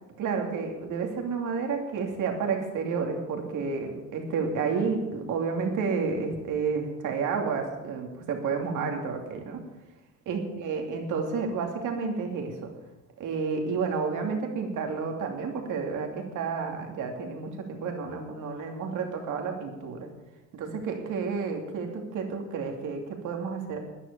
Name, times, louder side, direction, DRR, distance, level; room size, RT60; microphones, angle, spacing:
voice 1, 0.2-9.6 10.3-12.7 13.2-20.1 20.5-23.8, right 5 dB, 80° right, 3 dB, 2.7 m, -30 dB
13.0 x 10.5 x 6.9 m, 1.1 s
cardioid pair, 90°, 30 cm